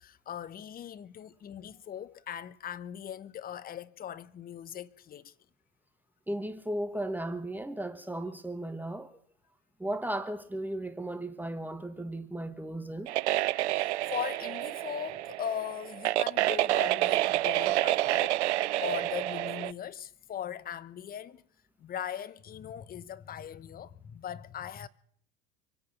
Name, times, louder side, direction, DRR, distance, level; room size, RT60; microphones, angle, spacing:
voice 1, 0.0-5.3 12.0-12.1 13.7-18.4 18.8-21.4 21.8-24.9, left 10 dB, 25° left, 0.8 m, -39 dB
voice 2, 6.3-9.2 9.8-13.1, right 1 dB, 5° right, 1.3 m, -35 dB
sound 1, 13.1-19.7, right 16 dB, 75° right, 0.6 m, -29 dB
25.5 x 8.6 x 6.1 m
hypercardioid pair, 80°, 35 cm